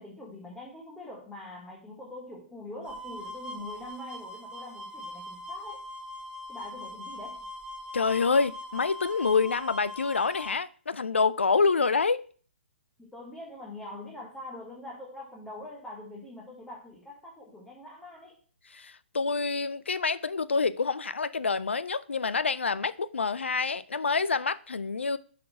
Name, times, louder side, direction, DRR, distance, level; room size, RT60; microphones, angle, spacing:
voice 1, 0.0-5.8 6.5-7.5 13.0-18.4, left 1 dB, 5° left, 1.5 m, -43 dB
sound 1, 2.9-10.6, left 1 dB, 10° right, 0.9 m, -41 dB
voice 2, 7.9-12.2 18.7-25.2, left 4 dB, 80° left, 0.4 m, -27 dB
7.4 x 4.2 x 5.8 m
figure-of-eight pair, 125°, 6 cm